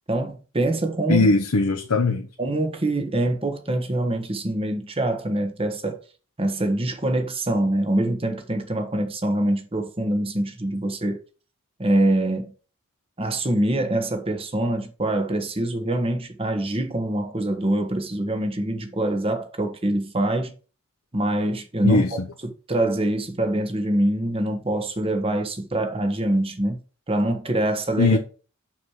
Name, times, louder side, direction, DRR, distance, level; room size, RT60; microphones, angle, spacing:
voice 1, 0.1-1.3 2.4-6.0 6.4-11.2 11.8-12.5 13.2-20.5 21.1-22.0 22.7-26.8 27.1-28.2, right 1 dB, 25° right, 1.2 m, -24 dB
voice 2, 1.1-2.3 21.8-22.3 28.0-28.2, left 2 dB, 85° left, 1.1 m, -20 dB
6.1 x 6.0 x 4.9 m
head